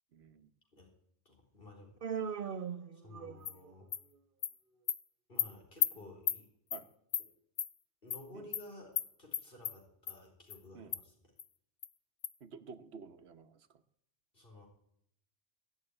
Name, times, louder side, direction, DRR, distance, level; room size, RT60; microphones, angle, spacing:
voice 1, 0.1-0.5 6.7-6.9 8.3-8.4 10.7-10.9 12.4-13.6, right 5 dB, 80° right, 10 dB, 1.3 m, -51 dB
voice 2, 1.2-3.9 5.3-6.5 7.2-7.3 8.0-11.3 14.3-14.7, left 1 dB, 60° left, 1 dB, 4.6 m, -54 dB
Human voice, 2.0-3.7, right 7 dB, 55° right, 1.1 m, -39 dB
Animal, 3.4-3.5 3.9-4.0 4.4-4.5 4.9-5.0 5.4-5.5 5.8-5.9 6.3-6.4 6.7-6.8 7.1-7.2 7.6-7.7 8.1-8.2 8.5-8.6 9.0-9.1 9.3-9.7 10.1-10.2 10.5-10.6 10.9-11.0 11.4-11.5 11.8-11.9 12.2-12.3, left 8 dB, 85° left, 1.1 m, -33 dB
21.0 x 7.1 x 9.8 m, 0.74 s
omnidirectional pair, 1.1 m